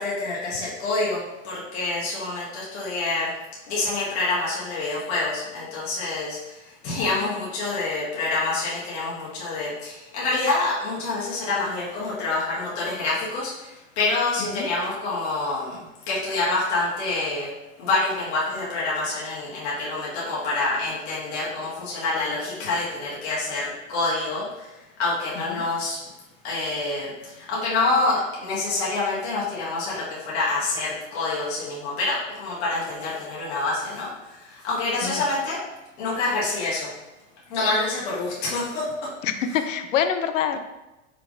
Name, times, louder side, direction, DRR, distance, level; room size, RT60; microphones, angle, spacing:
voice 1, 0.0-3.3 3.7-15.8 16.1-17.5 17.8-24.7 25.0-26.0 26.4-35.6 36.0-36.9 37.5-39.1, left 3 dB, 55° left, -7 dB, 1.5 m, -27 dB
voice 2, 39.2-40.6, left 8 dB, 75° left, 8 dB, 0.6 m, -26 dB
5.2 x 3.3 x 2.5 m, 1.0 s
hypercardioid pair, 110°, 39 cm